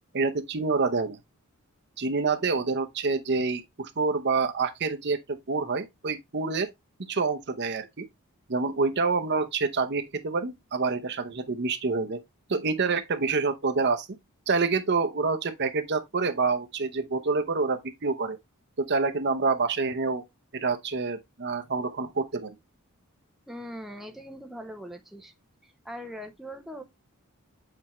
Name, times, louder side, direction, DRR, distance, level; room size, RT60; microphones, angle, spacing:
voice 1, 0.1-1.2 2.0-6.7 7.1-8.0 8.5-12.2 12.5-14.1 14.5-18.4 18.8-20.2 20.5-22.6, right 4 dB, 50° right, 0.8 m, -27 dB
voice 2, 23.5-25.3 25.6-26.8, equal, ahead, 0.6 m, -41 dB
7.8 x 4.4 x 3.0 m
head